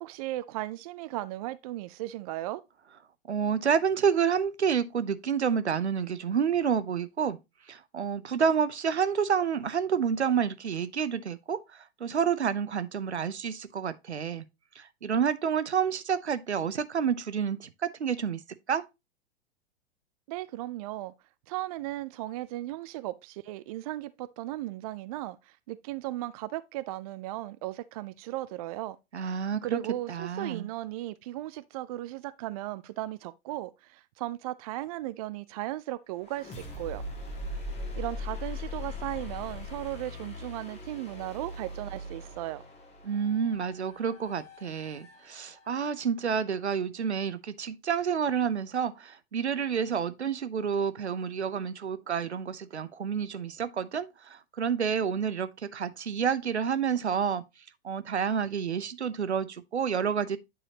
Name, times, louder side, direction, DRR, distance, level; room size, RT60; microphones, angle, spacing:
voice 1, 0.0-2.6 20.3-21.1 21.5-29.0 29.2-37.0 38.0-42.6, right 16 dB, 35° right, 0.4 m, -36 dB
voice 2, 3.3-7.4 7.7-11.6 12.0-14.4 14.8-18.4 18.7-18.8 29.1-29.8 30.1-30.7 43.0-57.4 57.8-60.4, right 7 dB, 85° right, 0.6 m, -29 dB
sound 1, 36.2-46.0, left 2 dB, 20° left, 1.4 m, -40 dB
9.2 x 4.2 x 2.8 m
figure-of-eight pair, 100°, 33 cm